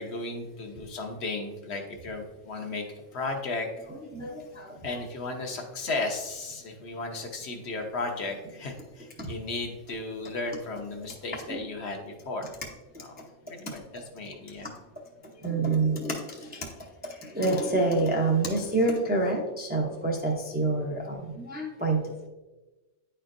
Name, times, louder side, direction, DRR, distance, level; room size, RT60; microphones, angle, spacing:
voice 1, 0.0-3.9 4.8-12.5 13.0-14.7, left 3 dB, 65° left, 3 dB, 1.1 m, -35 dB
voice 2, 4.1-4.8 9.2-9.3 11.5-11.6 14.6-14.7 15.3-16.7 17.0-22.3, right 2 dB, 10° right, -1 dB, 0.5 m, -27 dB
9.4 x 4.4 x 2.5 m, 1.2 s
omnidirectional pair, 1.2 m